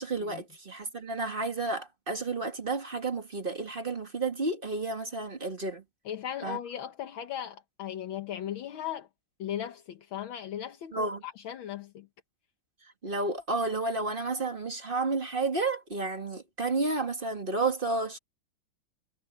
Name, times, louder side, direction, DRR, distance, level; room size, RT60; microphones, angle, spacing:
voice 1, 0.0-5.8 6.4-6.6 10.9-11.2 13.0-18.2, right 3 dB, 25° right, 1.8 m, -31 dB
voice 2, 6.1-9.1 9.4-12.1, left 10 dB, 75° left, 1.9 m, -37 dB
omnidirectional pair, 2.3 m